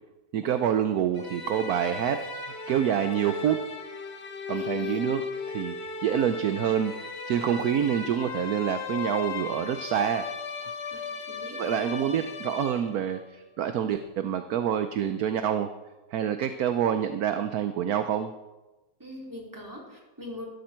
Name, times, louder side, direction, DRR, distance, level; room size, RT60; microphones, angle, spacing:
voice 1, 0.3-3.6 4.5-7.0 7.3-10.3 11.6-15.7 16.1-18.3, right 9 dB, 65° right, 9 dB, 1.1 m, -27 dB
sound 1, 1.1-13.2, left 4 dB, 40° left, 1.4 m, -36 dB
voice 2, 4.5-5.1 10.9-11.7 19.0-20.5, left 1 dB, 10° right, -3 dB, 3.9 m, -43 dB
15.0 x 13.5 x 4.5 m, 1.1 s
omnidirectional pair, 1.9 m